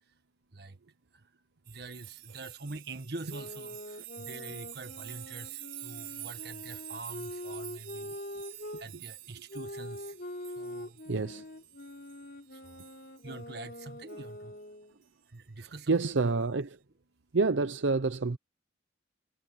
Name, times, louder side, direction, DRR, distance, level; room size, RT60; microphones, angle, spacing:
voice 1, 1.7-8.2 8.8-10.1 10.6-11.0 12.5-12.8 13.2-14.6 15.3-16.1, right 2 dB, 55° right, 1.5 m, -45 dB
sound 1, 1.7-12.3 12.6-13.6 14.1-14.2 16.0-16.2, right 15 dB, 90° right, 3.8 m, -47 dB
sound 2, 3.3-8.9 9.5-15.0, left 1 dB, 55° left, 3.8 m, -44 dB
voice 2, 11.1-11.4 15.6-16.8 17.3-18.4, right 3 dB, 75° right, 0.7 m, -28 dB
head